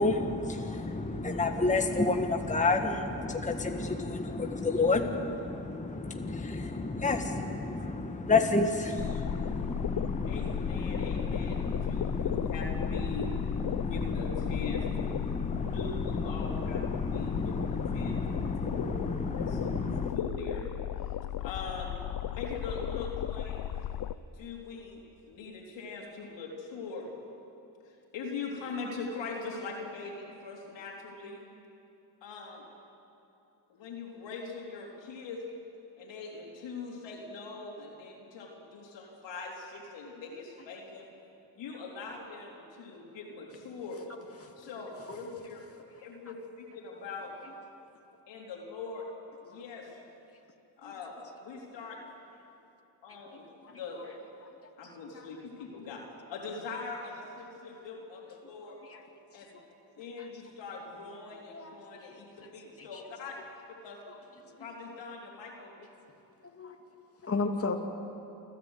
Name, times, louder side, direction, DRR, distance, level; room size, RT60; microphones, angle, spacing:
voice 1, 0.0-20.1, left 3 dB, 15° left, 4 dB, 1.5 m, -31 dB
sound 1, 9.0-24.2, left 11 dB, 50° left, 0.7 m, -35 dB
voice 2, 10.2-13.3 13.9-15.1 15.7-16.9 17.1-18.9 19.3-20.6 21.4-22.0 22.3-23.7 24.3-25.0 25.3-27.1 27.8-31.4 32.2-32.6 33.7-35.4 36.0-41.0 41.6-44.0 44.6-45.7 46.0-47.3 48.3-49.1 49.4-50.0 50.8-51.1 51.4-52.1 53.0-54.1 54.8-56.0 56.3-58.8 59.3-59.6 60.0-63.4 63.8-64.0 64.6-65.9, left 4 dB, 85° left, -1 dB, 3.7 m, -42 dB
voice 3, 66.4-66.8 67.2-67.7, left 3 dB, 30° left, 2 dB, 2.3 m, -36 dB
29.0 x 11.0 x 8.1 m, 2.8 s
cardioid pair, 65°, 43 cm